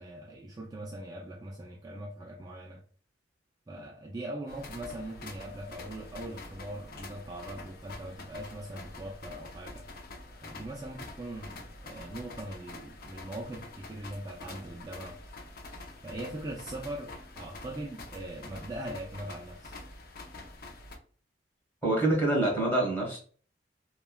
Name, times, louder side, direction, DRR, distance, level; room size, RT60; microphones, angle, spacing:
voice 1, 0.0-2.8 3.7-9.9 10.4-15.2 16.0-19.8, right 1 dB, 20° right, 0.3 m, -41 dB
sound 1, 4.5-21.0, left 2 dB, 55° left, 0.5 m, -46 dB
voice 2, 21.8-23.2, right 2 dB, 10° left, 1.3 m, -26 dB
3.3 x 2.2 x 2.2 m
head